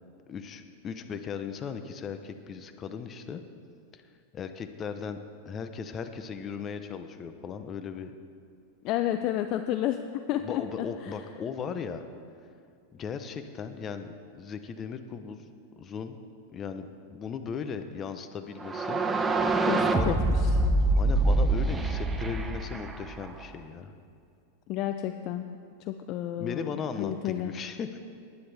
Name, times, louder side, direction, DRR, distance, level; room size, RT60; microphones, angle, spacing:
voice 1, 0.3-3.4 3.9-4.0 4.3-5.2 5.4-8.1 10.4-12.0 12.9-15.5 15.8-16.2 16.5-19.0 19.8-20.3 20.9-23.9 26.4-28.0, left 6 dB, 30° left, 8 dB, 0.9 m, -37 dB
voice 2, 8.8-11.2 19.6-20.2 20.4-20.5 24.7-25.6 25.9-26.7 27.0-27.5, left 12 dB, 45° left, 8 dB, 0.5 m, -31 dB
sound 1, 18.6-23.4, right 2 dB, 15° right, 0.8 m, -25 dB
19.0 x 9.3 x 3.5 m, 2.4 s
hypercardioid pair, 125°, 0 cm